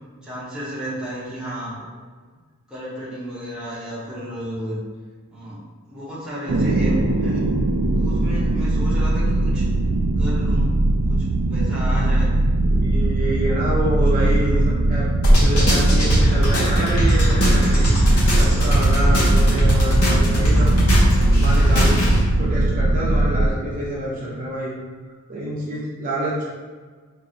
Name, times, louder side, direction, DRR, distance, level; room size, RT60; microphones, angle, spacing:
voice 1, 0.2-1.8 2.7-4.8 5.3-7.5 8.0-9.7 10.2-10.8 11.1-12.3 14.0-14.6, equal, 5° right, -9 dB, 0.9 m, -33 dB
sound 1, 6.5-23.5, right 2 dB, 80° right, 0.4 m, -20 dB
voice 2, 12.6-14.6 14.9-17.9 18.3-20.7 21.3-22.1 22.4-24.8 25.3-26.4, right 1 dB, 40° right, -6 dB, 0.6 m, -27 dB
sound 2, 15.2-22.2, equal, 75° left, 1.0 m, -19 dB
4.7 x 2.6 x 2.7 m, 1.5 s
head